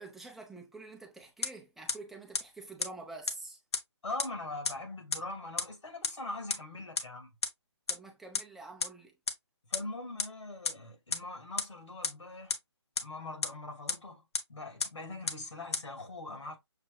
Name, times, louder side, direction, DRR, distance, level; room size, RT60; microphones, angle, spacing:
voice 1, 0.0-3.6 7.9-9.1, right 3 dB, ahead, 0.6 m, -47 dB
sound 1, 1.4-1.5 1.9-2.0 2.3-2.4 2.8-2.9 3.3-3.4 3.7-3.8 4.2-4.3 4.7-4.8 5.1-5.2 5.6-5.7 6.0-6.1 6.5-6.6 7.0-7.1 7.4-7.5 7.9-8.0 8.3-8.4 8.8-8.9 9.3-9.4 9.7-9.8 10.2-10.3 10.7-10.8 11.1-11.2 11.6-11.7 12.0-12.1 12.5-12.6 13.0-13.1 13.4-13.5 13.9-14.0 14.3-14.4 14.8-14.9 15.3-15.4 15.7-15.8, left 5 dB, 65° left, 0.9 m, -30 dB
voice 2, 4.0-7.3 9.7-12.6 13.0-14.2 14.5-16.6, left 2 dB, 85° left, 2.3 m, -42 dB
6.6 x 2.8 x 2.3 m
hypercardioid pair, 155°, 15 cm